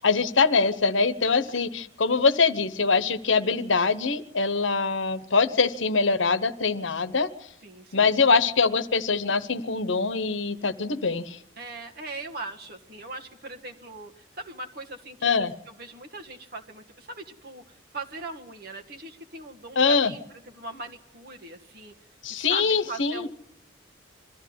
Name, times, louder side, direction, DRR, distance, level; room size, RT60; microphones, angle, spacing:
voice 1, 0.0-7.3 7.9-11.4 15.2-15.5 19.8-20.1 22.2-23.3, left 4 dB, 75° left, 13 dB, 1.1 m, -23 dB
voice 2, 1.3-1.6 7.6-8.1 11.6-15.5 15.8-20.2 20.5-21.9 22.3-23.3, right 2 dB, 50° right, 2 dB, 1.4 m, -40 dB
22.5 x 14.0 x 9.5 m, 0.76 s
head